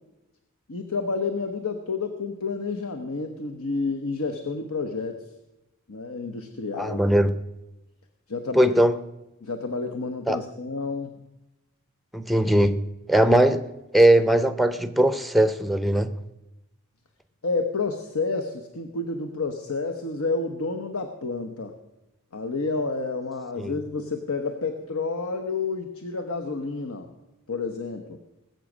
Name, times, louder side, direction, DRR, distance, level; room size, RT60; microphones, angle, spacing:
voice 1, 0.7-5.2 5.9-7.0 8.3-8.7 9.4-11.2 17.4-21.7 22.3-27.1 27.5-28.2, left 3 dB, 75° left, 5 dB, 1.0 m, -30 dB
voice 2, 6.8-7.3 8.5-9.0 10.3-10.4 12.1-12.8 13.1-13.7 13.9-16.1 23.6-23.7, right 1 dB, ahead, 12 dB, 0.5 m, -20 dB
20.0 x 7.7 x 6.1 m, 1.0 s
head